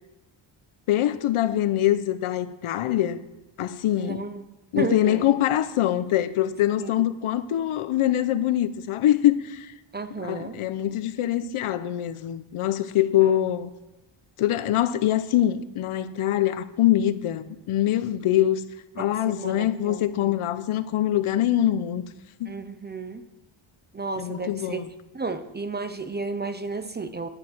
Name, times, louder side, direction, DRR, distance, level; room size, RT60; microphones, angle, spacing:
voice 1, 0.9-3.2 3.6-4.2 4.7-9.7 10.2-13.7 14.4-18.6 19.0-22.0 22.4-22.5 24.2-24.9, left 12 dB, 80° left, 0.8 m, -24 dB
voice 2, 3.9-4.4 4.8-5.3 6.8-6.9 9.9-10.6 13.2-13.4 19.0-20.4 22.5-23.2 23.9-24.8 25.1-27.3, right 3 dB, 20° right, 0.4 m, -33 dB
10.5 x 9.8 x 6.1 m
wide cardioid pair, 170°, 49 cm